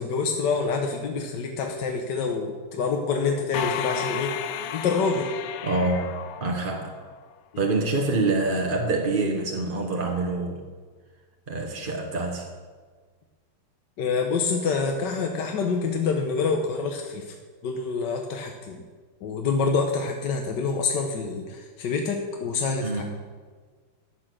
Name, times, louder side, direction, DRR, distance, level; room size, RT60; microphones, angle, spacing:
voice 1, 0.0-4.3 4.7-5.3 14.0-17.3 17.6-18.8 19.2-23.0, left 4 dB, 60° left, 2 dB, 1.4 m, -26 dB
sound 1, 3.5-7.2, left 10 dB, 85° left, 1.6 m, -33 dB
voice 2, 5.6-6.9 7.6-10.6 11.5-12.5 22.8-23.0, right 2 dB, 35° right, 1 dB, 1.0 m, -26 dB
13.5 x 8.8 x 6.2 m, 1.5 s
omnidirectional pair, 2.4 m